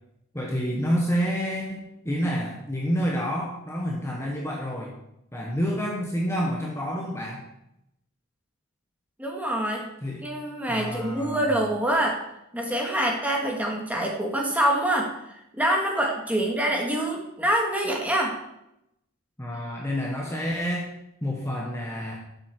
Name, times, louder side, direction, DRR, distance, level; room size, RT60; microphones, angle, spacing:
voice 1, 0.3-4.9 5.3-7.4 10.0-10.2 10.7-11.5 19.4-20.9 21.2-22.1, equal, 10° left, -2 dB, 1.4 m, -28 dB
voice 2, 9.2-9.8 10.2-12.2 12.5-15.1 15.5-18.3, right 1 dB, 5° right, 0 dB, 1.9 m, -25 dB
12.5 x 8.0 x 4.7 m, 0.83 s
head